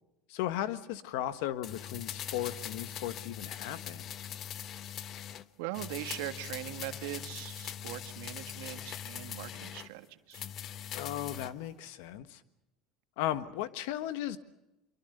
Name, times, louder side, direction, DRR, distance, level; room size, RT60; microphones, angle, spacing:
voice 1, 0.3-4.1 10.9-12.4 13.2-14.4, left 12 dB, 80° left, 12 dB, 1.4 m, -36 dB
sound 1, 1.6-5.5 5.7-9.9 10.3-11.5 11.8-11.9, left 10 dB, 50° left, 0.9 m, -42 dB
voice 2, 5.6-10.5, right 16 dB, 80° right, 9 dB, 1.6 m, -41 dB
25.0 x 24.5 x 6.7 m, 0.94 s
supercardioid pair, 100°, 0 cm